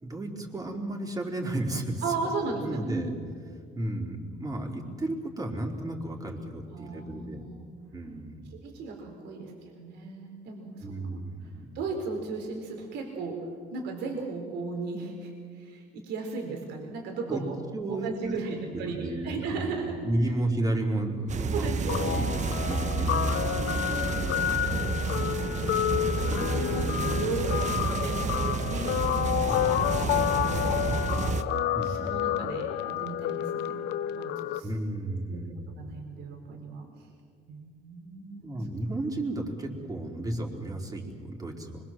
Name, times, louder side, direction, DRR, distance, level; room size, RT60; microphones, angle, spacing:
voice 1, 0.0-2.0 2.6-3.1 3.7-7.4 7.9-8.5 10.8-11.7 17.3-17.4 17.7-19.8 20.0-22.3 22.7-23.3 24.2-24.9 26.3-27.2 29.4-30.2 31.7-32.3 34.6-35.6 38.4-41.8, right 1 dB, 20° right, 1 dB, 4.1 m, -33 dB
voice 2, 2.0-3.2 6.7-7.7 8.5-9.5 9.8-10.9 11.7-13.4 13.7-17.6 17.9-20.0 21.5-22.4 22.9-24.6 25.2-31.5 31.8-33.8 34.1-34.7 35.3-35.4 35.8-36.8 37.5-38.5, right 4 dB, 85° right, 1 dB, 4.2 m, -36 dB
sound 1, 21.3-31.4, right 4 dB, 45° right, 1.3 m, -30 dB
Guitar, 21.9-34.6, left 12 dB, 80° left, 0.8 m, -30 dB
25.5 x 23.5 x 7.6 m, 2.2 s
cardioid pair, 110°, 17 cm